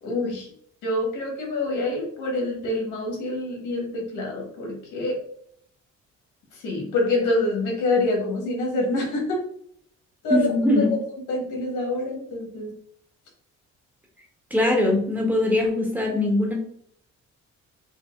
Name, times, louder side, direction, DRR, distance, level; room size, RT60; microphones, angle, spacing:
voice 1, 0.0-0.5 0.8-5.2 6.5-9.4 10.2-10.5 11.3-12.7, left 2 dB, 85° left, 0 dB, 1.6 m, -26 dB
voice 2, 10.3-10.9 14.5-16.5, left 1 dB, 5° right, -1 dB, 1.3 m, -21 dB
5.2 x 2.5 x 2.5 m, 0.65 s
cardioid pair, 90°, 30 cm